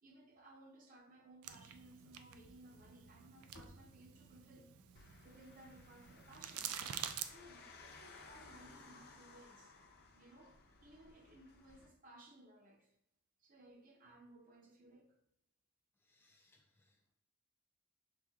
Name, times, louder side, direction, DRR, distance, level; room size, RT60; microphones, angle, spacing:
voice 1, 0.0-6.7 7.2-9.7 10.2-12.9 13.4-15.2, right 1 dB, 40° right, 3 dB, 0.6 m, -61 dB
sound 1, 1.4-7.3, right 9 dB, 85° right, 0.4 m, -48 dB
sound 2, 2.4-6.7, left 1 dB, 65° left, 1.1 m, -65 dB
sound 3, 5.0-11.9, left 3 dB, 45° left, 0.6 m, -59 dB
voice 2, 16.0-17.1, left 2 dB, 10° left, 0 dB, 0.3 m, -73 dB
6.0 x 3.5 x 2.3 m, 0.82 s
head